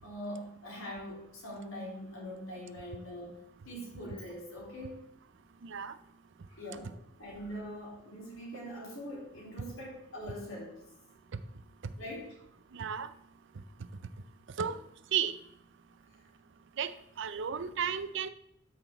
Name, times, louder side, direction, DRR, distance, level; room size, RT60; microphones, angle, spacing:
voice 1, 0.0-3.4 3.6-5.0 6.5-6.9 7.2-10.8 11.9-12.3 17.6-17.7, equal, 70° left, -4 dB, 4.2 m, -43 dB
voice 2, 5.6-6.0 11.8-11.9 12.7-13.1 14.6-14.8 15.1-15.3 16.8-18.3, right 8 dB, 60° right, 13 dB, 0.5 m, -33 dB
12.5 x 5.9 x 3.9 m, 0.76 s
head